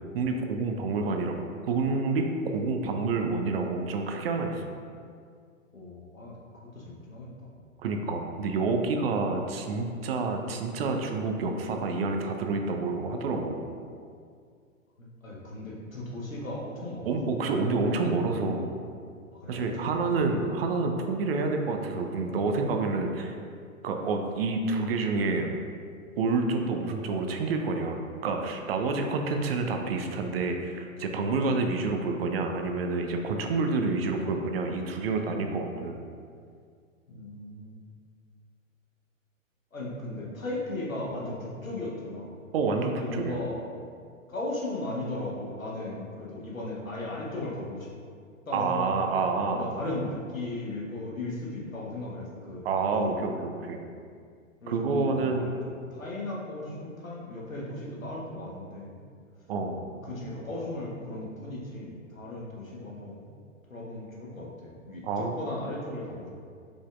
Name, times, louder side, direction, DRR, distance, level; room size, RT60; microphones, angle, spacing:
voice 1, 0.1-1.4 1.7-4.6 7.8-13.6 17.1-18.7 19.5-23.4 23.8-25.5 26.2-36.0 42.5-43.4 48.5-49.7 52.6-53.8 54.7-55.5 59.5-59.8 65.0-65.3, right 3 dB, 50° right, 4 dB, 0.5 m, -28 dB
voice 2, 5.7-6.3 6.7-7.5 15.0-17.3 19.3-20.2 21.9-22.9 37.1-37.8 39.7-42.3 43.0-43.7 44.3-47.9 48.4-49.0 49.5-52.7 52.9-53.3 54.6-59.1 59.6-63.3 63.7-66.3, left 2 dB, 90° left, -4 dB, 1.1 m, -37 dB
4.9 x 3.9 x 2.4 m, 2.2 s
figure-of-eight pair, 105°, 40 cm